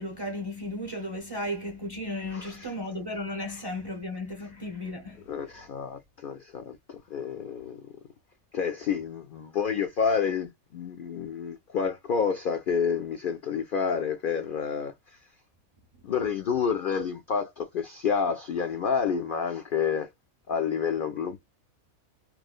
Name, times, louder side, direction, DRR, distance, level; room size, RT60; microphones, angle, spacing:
voice 1, 0.0-5.5, left 1 dB, 25° right, 0.5 m, -35 dB
voice 2, 2.3-2.7 5.3-7.8 8.5-15.2 16.0-20.1 20.5-21.4, left 6 dB, 70° left, 0.5 m, -29 dB
3.0 x 2.0 x 2.4 m
omnidirectional pair, 1.5 m